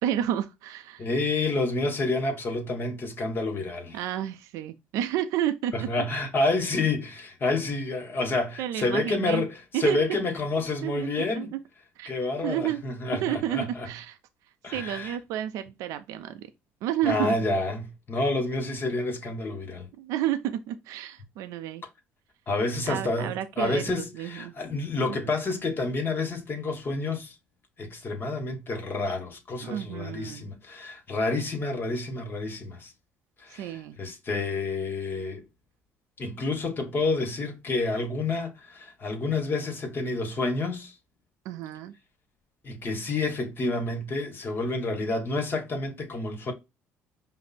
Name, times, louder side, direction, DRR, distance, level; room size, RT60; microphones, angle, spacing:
voice 1, 0.0-1.1 3.9-5.9 8.6-9.4 9.7-10.0 10.8-11.6 12.0-12.1 12.4-12.8 13.2-14.2 14.7-16.4 16.8-17.3 20.0-21.8 22.9-24.5 25.1-25.2 29.6-30.5 33.5-34.0 41.5-41.9, right 11 dB, 75° right, 0.4 m, -31 dB
voice 2, 1.0-4.0 5.7-11.5 12.1-13.9 14.6-15.2 17.0-19.9 22.5-27.3 27.8-32.9 33.4-35.4 36.2-40.9 42.6-46.5, left 3 dB, 40° left, 1.3 m, -29 dB
5.1 x 2.1 x 4.1 m
supercardioid pair, 75°, 6 cm